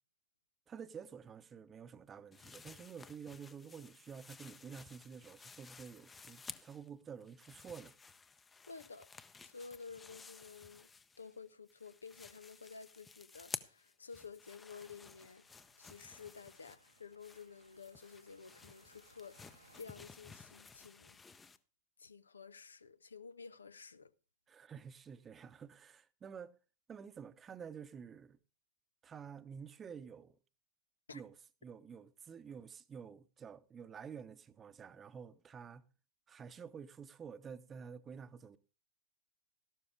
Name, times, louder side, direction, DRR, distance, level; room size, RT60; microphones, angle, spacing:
voice 1, 0.7-7.9 24.5-26.6 26.9-28.4 29.0-30.4 31.1-31.3 31.6-35.8 36.3-38.6, right 7 dB, 20° right, 0.8 m, -50 dB
sound 1, 2.3-6.9 7.2-11.4 11.7-21.6, left 4 dB, 15° left, 0.7 m, -54 dB
voice 2, 8.7-9.1 9.4-10.9 11.2-15.5 15.8-21.2 22.0-24.1 31.1-31.2, left 5 dB, 75° left, 0.6 m, -52 dB
sound 2, 14.8-19.8, right 2 dB, 80° right, 1.1 m, -68 dB
13.5 x 12.0 x 3.4 m
figure-of-eight pair, 90°, 0 cm